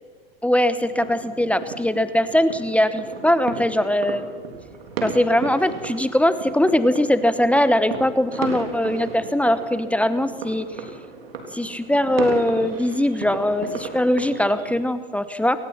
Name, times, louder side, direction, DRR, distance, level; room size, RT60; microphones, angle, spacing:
voice 1, 0.4-4.3 5.0-10.7 11.5-15.6, left 1 dB, 5° left, 12 dB, 1.0 m, -21 dB
sound 1, 0.7-14.7, right 4 dB, 85° right, 3.6 m, -35 dB
23.5 x 19.5 x 5.9 m, 1.4 s
hypercardioid pair, 100°, 29 cm